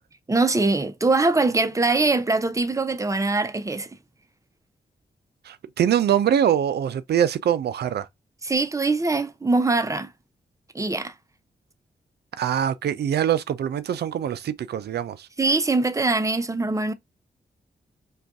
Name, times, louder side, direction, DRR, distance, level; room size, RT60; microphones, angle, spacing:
voice 1, 0.3-3.9 8.4-10.1 10.7-11.1 15.4-16.9, right 3 dB, 15° right, 0.6 m, -22 dB
voice 2, 5.5-8.1 12.4-15.3, right 9 dB, 70° right, 0.4 m, -23 dB
2.5 x 2.3 x 3.5 m
supercardioid pair, 45°, 18 cm